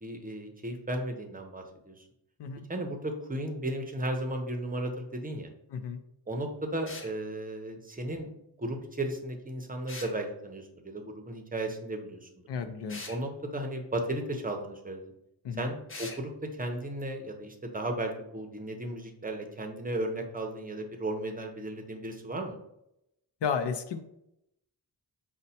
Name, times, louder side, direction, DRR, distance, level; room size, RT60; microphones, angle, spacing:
voice 1, 0.0-2.0 2.7-5.5 6.3-8.3 8.6-12.3 13.1-15.1 15.5-22.6, right 1 dB, 20° right, 3 dB, 0.6 m, -35 dB
voice 2, 5.7-6.0 12.5-13.0 15.4-15.7 23.4-24.0, left 6 dB, 75° left, 9 dB, 0.5 m, -33 dB
sound 1, 6.9-7.1 9.9-10.2 12.9-13.2 15.9-16.2, left 3 dB, 30° left, 0.6 m, -42 dB
5.3 x 2.1 x 4.1 m, 0.80 s
wide cardioid pair, 145°, 42 cm